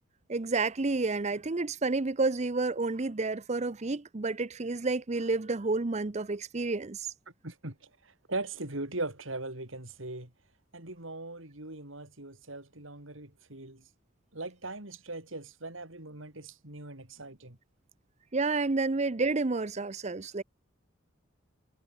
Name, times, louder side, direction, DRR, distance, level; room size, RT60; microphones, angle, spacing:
voice 1, 0.3-7.1 18.3-20.4, right 3 dB, 35° right, 0.6 m, -30 dB
voice 2, 7.4-7.8 8.0-10.3 10.7-13.8 14.3-17.6, right 2 dB, 70° right, 4.6 m, -40 dB
head